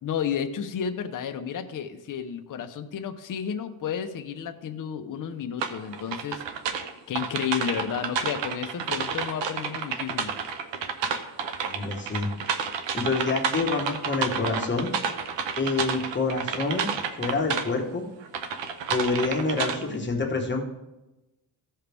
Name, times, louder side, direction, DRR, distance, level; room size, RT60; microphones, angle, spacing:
voice 1, 0.0-6.4 7.1-10.3, left 8 dB, 50° left, 6 dB, 0.9 m, -32 dB
sound 1, 5.6-17.7 18.2-19.9, right 6 dB, 85° right, 0.9 m, -30 dB
voice 2, 11.6-12.3 12.9-14.9 15.6-16.9 17.1-18.0 18.9-20.7, left 3 dB, 25° left, 1 dB, 1.4 m, -27 dB
15.0 x 5.6 x 3.5 m, 0.98 s
cardioid pair, 105°, 42 cm